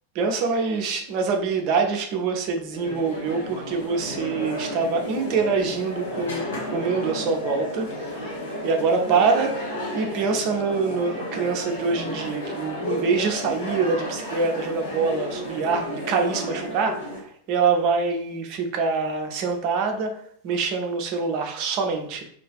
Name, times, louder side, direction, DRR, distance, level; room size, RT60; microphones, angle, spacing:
voice 1, 0.2-6.4 6.7-8.2 8.6-9.6 9.9-22.2, right 5 dB, 40° right, 3 dB, 0.5 m, -25 dB
sound 1, 2.7-17.2, left 1 dB, 60° left, 0.7 m, -32 dB
2.5 x 2.4 x 2.2 m, 0.62 s
figure-of-eight pair, 90°, 0 cm